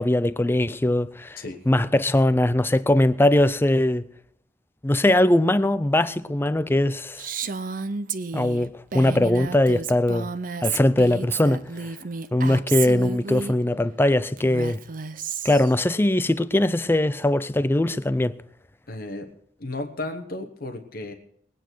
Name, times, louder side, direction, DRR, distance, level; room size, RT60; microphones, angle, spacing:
voice 1, 0.0-1.4 1.7-4.0 4.8-7.2 8.3-10.3 10.6-11.9 12.3-14.8 15.4-18.4, left 1 dB, 10° left, 0.4 m, -21 dB
Female speech woman speaking, 7.2-13.5 14.4-15.7, right 5 dB, 45° right, 0.6 m, -31 dB
voice 2, 18.9-19.3 19.6-21.1, left 2 dB, 50° left, 1.1 m, -34 dB
21.0 x 9.2 x 4.6 m
head